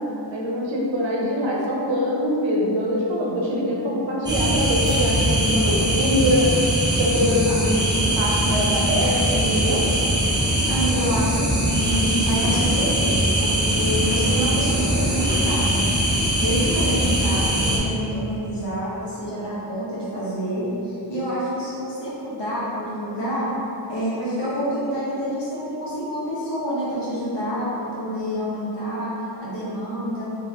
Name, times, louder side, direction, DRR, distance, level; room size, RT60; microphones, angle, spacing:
voice 1, 0.3-6.6 6.9-9.9, equal, 90° right, -3 dB, 0.7 m, -23 dB
sound 1, 4.2-17.8, right 1 dB, 10° right, 0.5 m, -21 dB
voice 2, 10.7-16.0 16.4-23.5 23.9-30.2, equal, 70° left, -10 dB, 1.3 m, -27 dB
2.9 x 2.8 x 3.2 m, 2.9 s
wide cardioid pair, 125°, 44 cm